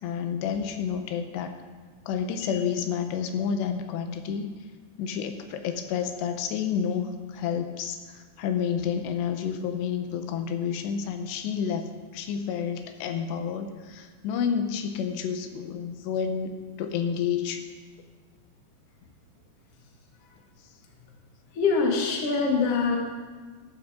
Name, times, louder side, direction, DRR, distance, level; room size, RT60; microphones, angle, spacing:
voice 1, 0.0-1.5 2.1-4.5 5.0-17.6, left 7 dB, 85° left, 7 dB, 2.9 m, -30 dB
voice 2, 21.5-23.0, left 4 dB, 45° left, 0 dB, 2.1 m, -24 dB
14.5 x 12.5 x 3.7 m, 1.4 s
omnidirectional pair, 4.9 m